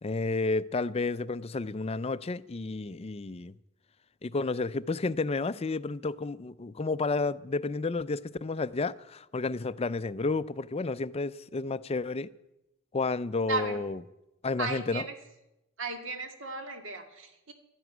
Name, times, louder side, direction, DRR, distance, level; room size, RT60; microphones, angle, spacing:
voice 1, 0.0-3.5 4.2-12.3 12.9-14.0 14.4-15.0, left 3 dB, 30° left, 0.5 m, -31 dB
voice 2, 13.5-13.8 14.6-15.1 15.8-17.5, right 3 dB, 65° right, 2.1 m, -35 dB
13.0 x 11.0 x 9.3 m
head